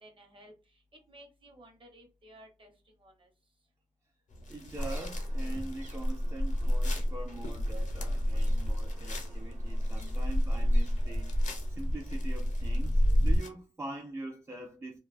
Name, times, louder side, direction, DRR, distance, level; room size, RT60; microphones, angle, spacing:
voice 1, 0.0-3.3, right 1 dB, 40° right, 0.8 m, -56 dB
sound 1, 4.3-13.5, left 2 dB, 70° left, 0.6 m, -48 dB
voice 2, 4.5-15.0, right 2 dB, 20° right, 0.4 m, -43 dB
sound 2, 4.8-13.4, equal, 70° right, 1.0 m, -29 dB
2.5 x 2.2 x 2.4 m
wide cardioid pair, 120°, 13 cm